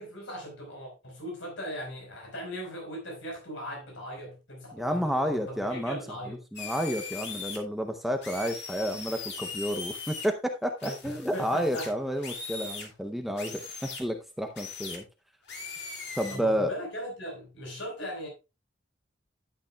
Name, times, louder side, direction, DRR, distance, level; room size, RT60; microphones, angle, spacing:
voice 1, 0.0-6.4 10.8-11.9 16.3-18.3, equal, 80° left, 4.4 m, -39 dB
voice 2, 4.7-6.0 6.3-15.0 16.2-16.7, equal, ahead, 0.6 m, -30 dB
sound 1, 6.6-7.6 8.2-10.3 10.8-12.9 13.4-14.0 14.6-15.0 15.5-16.4, left 4 dB, 55° left, 2.6 m, -39 dB
11.5 x 9.0 x 2.2 m
head